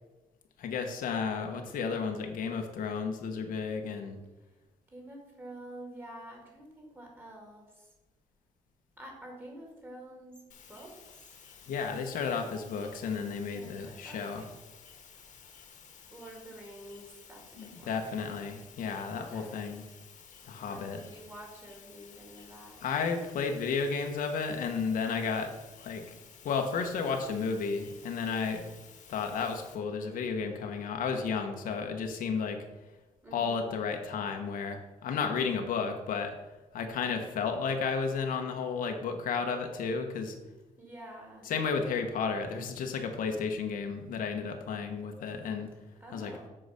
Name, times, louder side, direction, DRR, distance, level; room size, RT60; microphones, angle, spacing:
voice 1, 0.6-4.2 11.7-14.4 17.6-19.8 20.4-21.0 22.8-25.5 25.8-26.2 26.4-28.6 29.1-32.6 33.3-36.3 36.7-40.3 41.4-45.7 46.1-46.3, left 5 dB, 80° left, 4 dB, 1.1 m, -32 dB
voice 2, 4.9-7.9 9.0-10.4 10.7-11.4 13.5-14.5 16.1-18.2 19.1-19.6 20.6-22.8 33.2-33.8 40.8-41.5 46.0-46.5, right 1 dB, 15° right, 0 dB, 2.3 m, -48 dB
sound 1, 10.5-29.7, left 6 dB, 60° left, 1.5 m, -54 dB
7.7 x 5.0 x 6.5 m, 1.1 s
cardioid pair, 155°, 14 cm